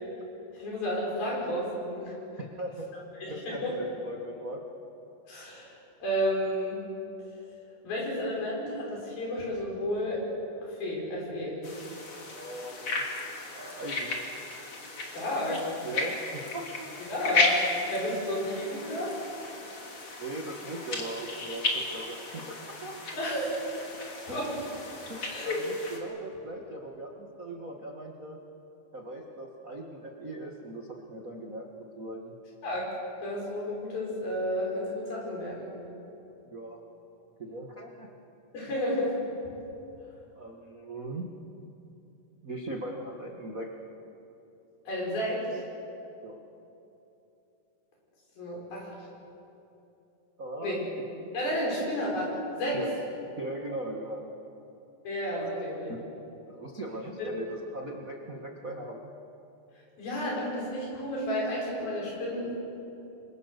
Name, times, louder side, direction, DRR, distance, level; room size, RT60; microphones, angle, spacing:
voice 1, 0.5-2.2 2.9-3.7 5.3-6.8 7.8-10.2 10.8-11.6 15.0-15.7 17.1-17.6 17.9-19.1 19.4-19.5 23.2-23.6 24.3-24.6 25.3-25.9 32.6-32.9 33.2-35.7 38.5-39.2 44.9-45.6 48.4-48.9 50.6-50.8 51.3-52.8 55.0-55.9 57.2-57.3 60.0-62.5, equal, 65° left, -3 dB, 8.0 m, -32 dB
voice 2, 2.4-2.9 3.3-4.6 12.3-13.0 13.5-14.2 15.8-17.1 18.1-18.2 20.2-22.9 24.3-24.4 25.1-28.4 28.9-32.3 36.5-36.8 37.4-38.1 40.3-41.3 42.4-43.7 46.2-46.4 50.4-50.8 52.7-52.9 53.4-54.3 55.4-55.5 55.9-56.0 56.5-59.1, right 1 dB, 85° right, 0 dB, 0.7 m, -39 dB
sound 1, 11.6-26.0, left 3 dB, 35° left, 3.2 m, -34 dB
29.0 x 24.5 x 6.7 m, 2.9 s
omnidirectional pair, 4.6 m